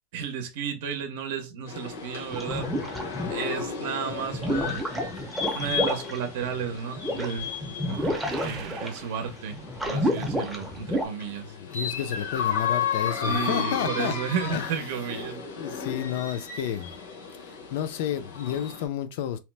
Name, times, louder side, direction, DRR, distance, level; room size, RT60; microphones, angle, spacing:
voice 1, 0.1-2.7 3.3-4.8 5.5-7.5 7.9-8.1 8.4-9.6 9.9-11.5 13.2-15.4, right 7 dB, 70° right, 0.6 m, -33 dB
sound 1, 1.7-18.9, left 6 dB, 85° left, 1.0 m, -34 dB
sound 2, 2.3-3.7 4.1-11.1, equal, ahead, 0.5 m, -30 dB
sound 3, 7.7-9.9, right 6 dB, 35° right, 0.7 m, -43 dB
voice 2, 11.6-14.1 14.5-14.9 15.6-16.9 17.4-19.4, left 10 dB, 65° left, 0.5 m, -31 dB
2.8 x 2.0 x 3.2 m
supercardioid pair, 155°, 0 cm